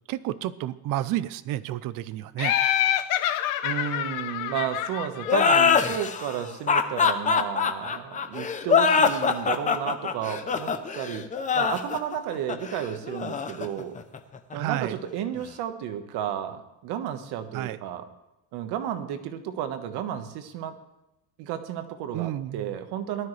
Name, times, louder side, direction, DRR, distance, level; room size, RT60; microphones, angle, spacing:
voice 1, 0.1-2.5 14.5-15.0 17.5-17.8 22.1-22.7, right 13 dB, 50° right, 16 dB, 0.6 m, -30 dB
Laughter, 2.4-6.0, left 11 dB, 50° left, 0.9 m, -27 dB
voice 2, 3.6-11.2 11.5-13.9 14.5-18.1 18.5-20.7 21.4-23.3, right 9 dB, 70° right, 8 dB, 1.4 m, -32 dB
sound 1, 5.3-14.5, left 6 dB, 20° left, 0.6 m, -23 dB
19.0 x 12.5 x 3.3 m, 0.93 s
cardioid pair, 170°, 41 cm